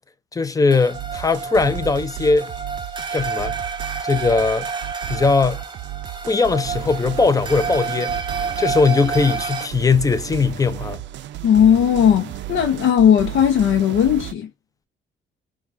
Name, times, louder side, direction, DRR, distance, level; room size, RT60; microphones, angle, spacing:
voice 1, 0.3-2.5 3.1-3.6 4.0-4.7 5.1-5.6 6.3-8.2 8.6-11.0, left 4 dB, 15° left, 0.6 m, -19 dB
sound 1, 0.7-9.7, right 5 dB, 25° right, 0.7 m, -29 dB
sound 2, 0.9-14.3, right 15 dB, 65° right, 0.4 m, -34 dB
voice 2, 11.4-14.5, left 9 dB, 75° left, 0.7 m, -16 dB
4.6 x 2.4 x 2.6 m
cardioid pair, 90°, 20 cm